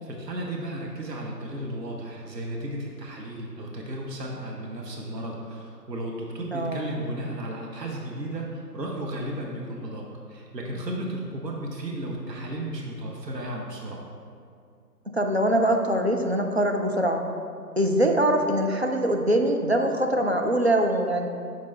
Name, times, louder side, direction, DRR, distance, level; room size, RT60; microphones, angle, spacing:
voice 1, 0.0-14.1, right 1 dB, 80° right, -1 dB, 1.1 m, -34 dB
voice 2, 6.5-6.9 15.1-17.2 17.8-21.3, right 1 dB, 45° right, 2 dB, 0.4 m, -23 dB
6.8 x 4.6 x 4.1 m, 2.4 s
figure-of-eight pair, 150°, 49 cm